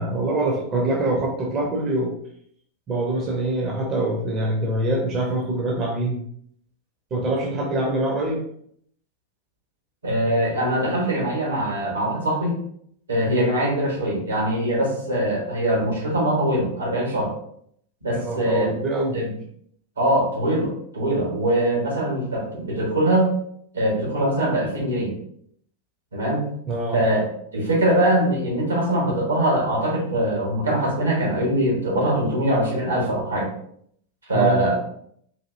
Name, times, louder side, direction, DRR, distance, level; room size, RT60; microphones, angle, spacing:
voice 1, 0.0-2.1 2.9-6.2 7.1-8.4 13.3-13.5 18.1-19.2 26.7-27.0 34.3-34.7, right 2 dB, 30° right, -1 dB, 0.8 m, -24 dB
voice 2, 10.0-12.6 13.1-17.3 18.0-18.7 19.1-19.3 20.0-23.3 23.7-25.1 26.1-26.4 26.9-33.5 34.3-34.8, right 1 dB, 75° right, -2 dB, 1.4 m, -22 dB
4.1 x 2.7 x 2.6 m, 0.67 s
figure-of-eight pair, 90°, 0 cm